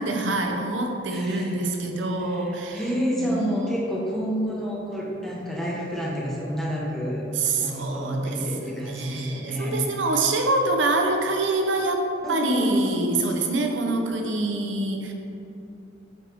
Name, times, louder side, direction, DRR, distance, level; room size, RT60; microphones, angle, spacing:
voice 1, 0.0-2.8 3.2-3.6 7.3-15.1, right 2 dB, 85° right, 2 dB, 0.8 m, -26 dB
voice 2, 1.1-1.6 2.2-7.2 7.5-9.8 12.2-13.0, equal, ahead, -6 dB, 1.2 m, -28 dB
8.2 x 3.5 x 4.6 m, 2.8 s
head